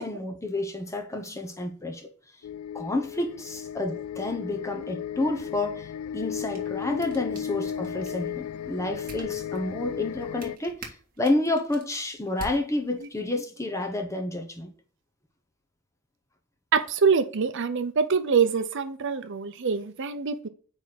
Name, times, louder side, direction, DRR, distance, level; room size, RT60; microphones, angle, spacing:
voice 1, 0.0-2.1 2.7-5.9 6.1-10.9 11.2-14.7, left 2 dB, 15° left, 1.1 m, -30 dB
sound 1, 2.4-10.6, left 9 dB, 85° left, 0.3 m, -35 dB
sound 2, 6.2-13.3, right 2 dB, 45° right, 1.7 m, -48 dB
voice 2, 16.7-20.5, right 5 dB, 60° right, 0.6 m, -25 dB
8.9 x 3.5 x 4.0 m
head